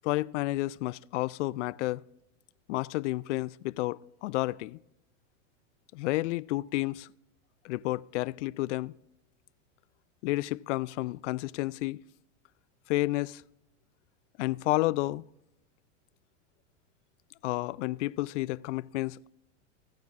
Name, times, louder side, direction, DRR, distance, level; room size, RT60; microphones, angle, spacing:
voice 1, 0.0-2.0 2.7-4.8 5.9-7.1 7.6-8.9 10.2-12.0 12.9-13.4 14.4-15.2 17.4-19.3, left 19 dB, 70° left, 0.5 m, -31 dB
27.5 x 9.4 x 2.5 m
hypercardioid pair, 110°, 38 cm